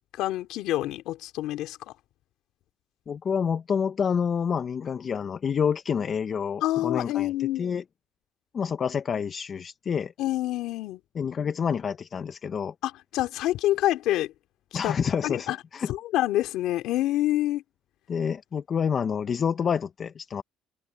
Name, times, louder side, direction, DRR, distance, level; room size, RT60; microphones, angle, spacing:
voice 1, 0.1-1.8 6.6-7.8 10.2-11.0 12.8-14.3 14.8-14.9 15.2-15.6 15.9-17.6, left 15 dB, 75° left, 2.8 m, -27 dB
voice 2, 3.1-7.3 7.6-7.8 8.5-10.1 11.1-12.7 14.7-15.9 18.1-20.4, left 7 dB, 40° left, 0.8 m, -28 dB
cardioid pair, 110°, 0 cm